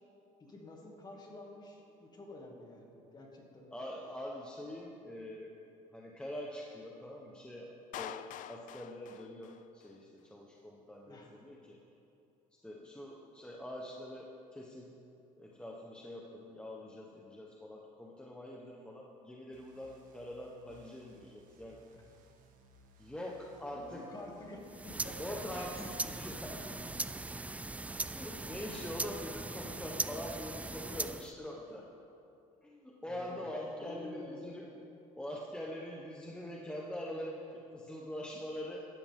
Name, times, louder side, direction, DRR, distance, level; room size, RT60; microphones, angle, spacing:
voice 1, 0.4-3.7 11.1-11.3 21.9-22.0 23.7-25.2 33.1-33.5 33.8-34.5, left 2 dB, 25° left, -1 dB, 2.5 m, -49 dB
voice 2, 3.7-5.5 5.9-11.8 12.6-14.9 15.4-21.8 23.0-24.0 25.2-26.8 28.1-31.9 32.6-34.6 35.2-38.9, left 1 dB, 5° left, -2 dB, 1.2 m, -44 dB
Clapping, 7.9-10.0, left 11 dB, 60° left, 0.5 m, -46 dB
sound 1, 19.5-27.4, right 2 dB, 60° right, 1.7 m, -63 dB
sound 2, 24.6-31.3, right 2 dB, 10° right, 0.3 m, -40 dB
17.0 x 13.0 x 3.7 m, 2.8 s
cardioid pair, 120°, 15 cm